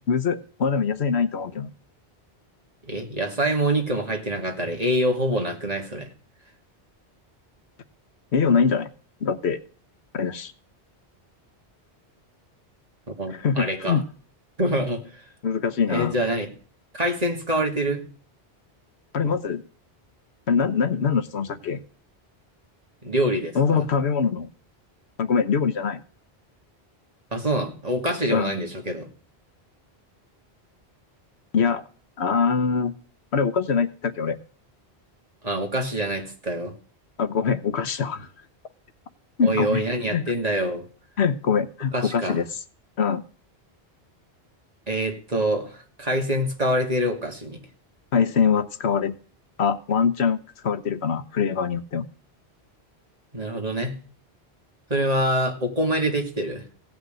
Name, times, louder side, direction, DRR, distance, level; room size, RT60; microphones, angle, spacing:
voice 1, 0.0-1.7 8.3-8.9 9.2-9.6 10.1-10.5 13.3-14.0 15.4-16.1 19.1-19.6 20.5-21.8 23.5-24.5 25.2-26.0 28.3-28.5 31.5-31.8 32.2-32.9 33.3-34.4 37.2-38.3 39.4-39.8 40.1-40.2 41.2-42.5 43.0-43.2 48.1-49.1 49.6-52.1, left 6 dB, 80° left, 12 dB, 1.2 m, -23 dB
voice 2, 2.9-6.1 13.2-14.0 14.6-15.1 15.9-16.5 16.9-18.0 23.0-23.9 27.3-29.1 35.4-36.7 39.4-40.9 41.9-42.4 44.9-47.6 53.3-54.0 54.9-56.6, right 1 dB, 35° right, 3 dB, 2.4 m, -25 dB
16.5 x 5.8 x 9.0 m, 0.41 s
omnidirectional pair, 1.1 m